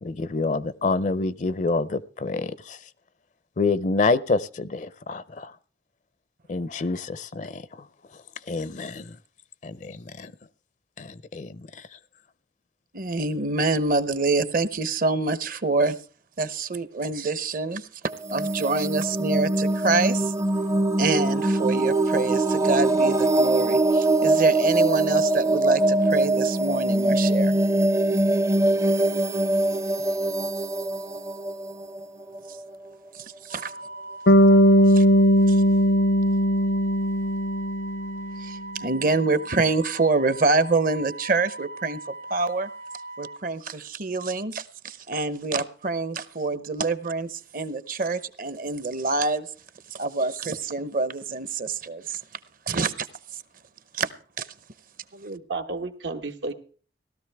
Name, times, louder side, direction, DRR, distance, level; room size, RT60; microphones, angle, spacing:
voice 1, 0.0-2.8 3.6-5.5 6.5-7.8 8.5-9.2 9.6-10.3 11.0-11.9, left 3 dB, 45° left, 17 dB, 0.5 m, -27 dB
voice 2, 12.9-16.0 16.4-17.9 18.3-20.3 21.0-27.6 32.5-32.6 33.1-33.7 34.9-35.0 35.5-35.6 38.4-42.0 42.3-42.7 43.2-49.5 49.9-52.2 52.7-53.1 53.9-54.1 54.4-54.5, right 3 dB, 50° right, 14 dB, 0.8 m, -26 dB
sound 1, 18.1-32.8, right 2 dB, 15° right, 0.5 m, -23 dB
Wind instrument woodwind instrument, 33.5-43.4, right 2 dB, 65° right, 2.4 m, -40 dB
Bass guitar, 34.3-38.4, equal, 75° left, 0.7 m, -18 dB
voice 3, 55.1-56.5, right 3 dB, 85° right, 6 dB, 1.4 m, -32 dB
16.5 x 13.0 x 3.4 m, 0.41 s
head